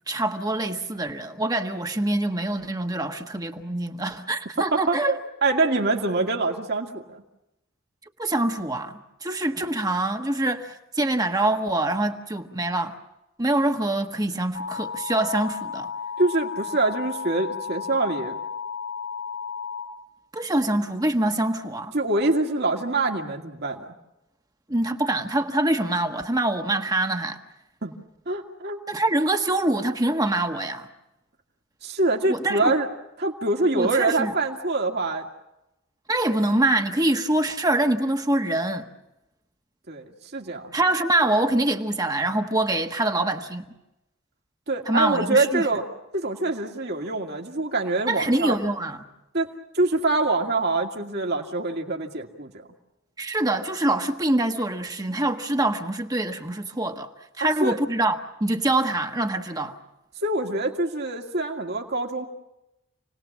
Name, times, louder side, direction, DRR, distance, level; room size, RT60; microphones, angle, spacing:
voice 1, 0.1-5.1 8.2-12.9 13.4-15.9 20.3-21.9 24.7-27.4 28.9-30.9 32.3-32.7 33.7-34.3 36.1-38.9 40.7-43.6 44.9-45.6 48.1-49.0 53.2-57.1 57.4-59.8, right 1 dB, 20° right, 1.4 m, -25 dB
voice 2, 4.7-7.2 16.2-18.4 21.9-23.9 27.8-27.9 28.3-28.8 31.8-32.9 33.2-35.3 39.9-40.7 44.7-45.8 46.1-48.6 49.3-52.5 57.4-57.8 60.2-62.3, right 2 dB, 55° right, 2.3 m, -25 dB
sound 1, 14.5-19.9, left 6 dB, 85° left, 5.2 m, -33 dB
29.0 x 19.5 x 7.3 m
head